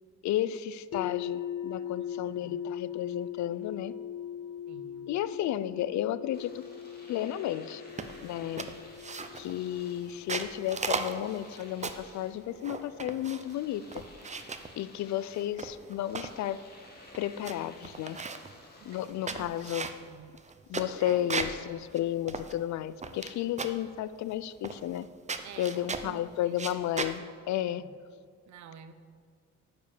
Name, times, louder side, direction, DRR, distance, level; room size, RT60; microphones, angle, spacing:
voice 1, 0.2-3.9 5.1-6.6 7.1-7.8 8.2-8.7 9.3-14.0 14.8-16.6 17.1-18.2 18.8-19.9 20.7-25.1 25.6-27.9, left 12 dB, 65° left, 16 dB, 0.5 m, -33 dB
sound 1, 0.9-12.8, left 9 dB, 50° left, 1.0 m, -41 dB
voice 2, 2.1-2.6 4.7-5.2 18.8-19.6 20.0-20.3 21.0-21.2 25.4-26.5 27.6-27.9 28.5-28.9, right 8 dB, 70° right, 10 dB, 0.8 m, -50 dB
Domestic sounds home sounds, 6.3-19.7, left 1 dB, 30° left, 2.2 m, -54 dB
sound 2, 8.0-8.3 8.6-9.6 10.1-12.1 12.6-13.5 13.9-14.7 15.3-16.4 16.8-16.9 17.1-17.5 17.8-18.5 19.0-21.6 21.9-22.0 22.3-23.3 23.6-23.9 24.6-25.0 25.3-26.1 26.5-27.2, right 4 dB, 25° right, 0.7 m, -36 dB
9.2 x 5.3 x 7.3 m, 2.1 s
cardioid pair, 90°, 30 cm